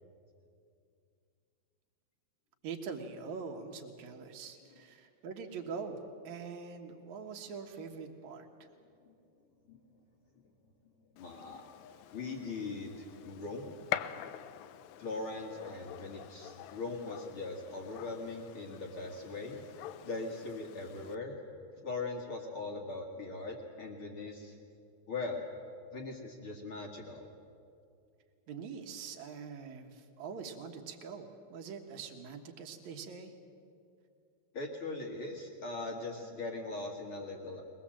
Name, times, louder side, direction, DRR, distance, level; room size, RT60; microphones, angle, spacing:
voice 1, 2.6-6.0 6.2-8.5 28.5-33.3, right 5 dB, 70° right, 3 dB, 1.7 m, -43 dB
voice 2, 11.1-11.6 12.1-13.7 15.0-19.6 20.0-21.4 21.8-24.5 25.1-25.5 25.9-27.3 34.5-37.6, left 3 dB, 60° left, 1 dB, 1.4 m, -40 dB
Gunshot gunfire, 11.2-21.1, left 12 dB, 80° left, 2.5 m, -45 dB
22.0 x 20.0 x 7.6 m, 2.4 s
omnidirectional pair, 5.3 m